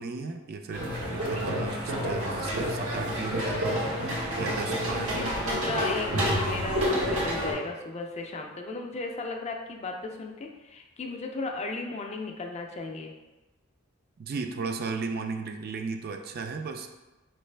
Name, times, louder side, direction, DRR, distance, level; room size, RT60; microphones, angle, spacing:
voice 1, 0.0-3.9 4.4-5.9 14.2-16.9, right 4 dB, 45° right, 5 dB, 0.3 m, -35 dB
sound 1, 0.7-7.5, equal, 85° right, 1.3 m, -29 dB
voice 2, 4.4-13.1, left 3 dB, 30° left, 2 dB, 0.4 m, -36 dB
4.4 x 3.2 x 3.2 m, 1.1 s
head